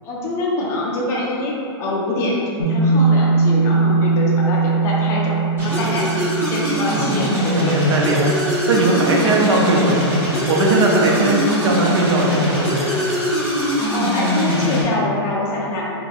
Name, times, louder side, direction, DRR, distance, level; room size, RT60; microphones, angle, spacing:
voice 1, 0.0-7.8 13.9-15.9, left 1 dB, 20° left, -4 dB, 0.4 m, -24 dB
sound 1, 2.6-12.1, right 4 dB, 75° left, 0.5 m, -22 dB
sound 2, 5.6-14.8, equal, 15° right, 0.7 m, -22 dB
voice 2, 7.5-8.3 8.7-10.0 10.5-12.8, right 2 dB, 90° right, -2 dB, 0.7 m, -18 dB
3.4 x 2.2 x 3.4 m, 2.7 s
supercardioid pair, 160°, 14 cm